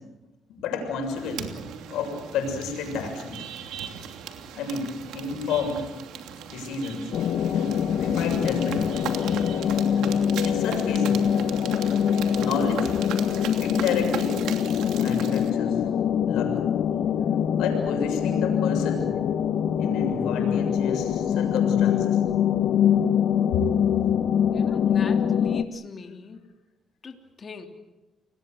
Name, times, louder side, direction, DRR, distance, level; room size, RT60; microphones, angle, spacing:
voice 1, 0.6-1.5 1.9-3.4 4.5-4.9 5.1-5.9 6.5-7.1 7.5-8.9 10.4-11.2 11.8-11.9 12.4-12.9 13.6-14.4 14.9-15.8 16.3-16.5 17.5-19.0 19.8-22.2 23.5-23.6, left 4 dB, 90° left, 3 dB, 7.0 m, -30 dB
sound 1, 1.0-15.5, right 8 dB, 85° right, 2.9 m, -38 dB
sound 2, 7.1-25.6, left 8 dB, 70° left, 1.2 m, -24 dB
voice 2, 24.5-26.4 27.0-27.7, left 5 dB, 40° left, 4 dB, 3.4 m, -40 dB
30.0 x 20.5 x 8.0 m, 1.0 s
cardioid pair, 90°, 0 cm